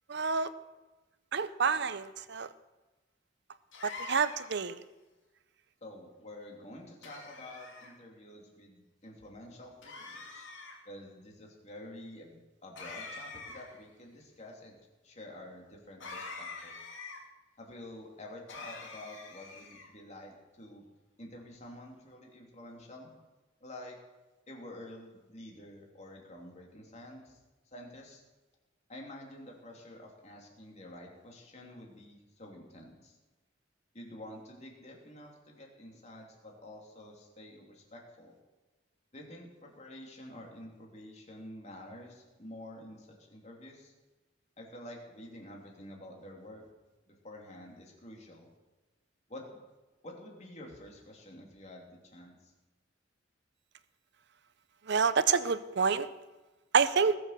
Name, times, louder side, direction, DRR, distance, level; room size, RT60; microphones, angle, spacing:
voice 1, 0.1-0.5 1.3-2.5 3.8-4.8 54.9-56.1 56.7-57.1, right 5 dB, 65° right, 14 dB, 0.7 m, -28 dB
sound 1, 3.7-4.7 7.0-7.9 9.8-10.8 12.7-13.8 16.0-17.2 18.5-19.9, left 3 dB, 80° left, 2.9 m, -45 dB
voice 2, 5.8-10.5 10.8-14.8 15.0-16.8 17.6-20.8 21.2-23.1 23.6-24.0 24.5-27.4 27.7-28.2 28.9-33.2 33.9-38.3 39.1-43.9 44.6-46.7 47.1-48.5 49.3-49.6 50.0-52.5, left 1 dB, 35° left, 0 dB, 3.1 m, -49 dB
20.5 x 7.1 x 6.7 m, 1.2 s
head